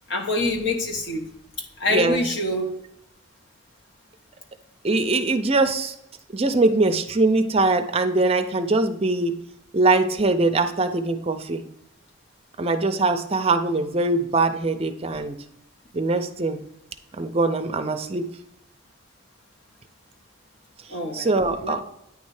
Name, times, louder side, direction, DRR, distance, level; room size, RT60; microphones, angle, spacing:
voice 1, 0.1-2.7 20.9-21.3 21.6-21.8, left 2 dB, 55° left, 1 dB, 1.1 m, -26 dB
voice 2, 1.9-2.2 4.8-5.9 6.3-9.4 9.7-11.7 12.6-15.4 15.9-16.6 17.2-18.3 21.1-21.8, right 3 dB, 30° right, 7 dB, 0.5 m, -22 dB
9.3 x 3.2 x 4.8 m, 0.81 s
head